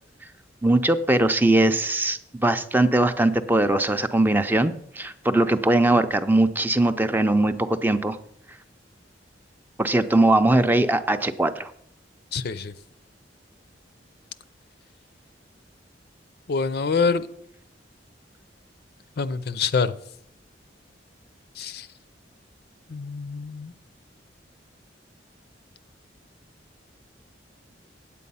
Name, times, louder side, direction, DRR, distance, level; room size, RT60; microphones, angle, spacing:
voice 1, 0.6-8.2 9.8-11.7, right 2 dB, 10° right, 0.5 m, -21 dB
voice 2, 12.3-12.7 16.5-17.3 19.2-19.9 21.6-21.9 22.9-23.7, left 5 dB, 60° left, 0.5 m, -25 dB
8.5 x 8.4 x 5.5 m
head